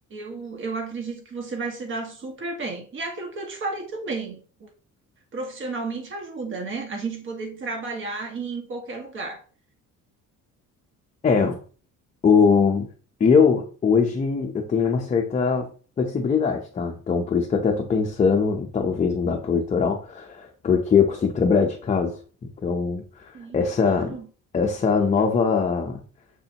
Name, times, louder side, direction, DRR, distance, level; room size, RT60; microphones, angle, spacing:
voice 1, 0.1-4.7 5.3-9.4 23.3-24.3, right 3 dB, 40° right, 1.8 m, -32 dB
voice 2, 11.2-11.6 12.2-12.9 13.2-15.7 16.0-24.1 24.5-26.0, left 5 dB, 20° left, 0.7 m, -21 dB
7.0 x 6.6 x 2.9 m
cardioid pair, 170°, 33 cm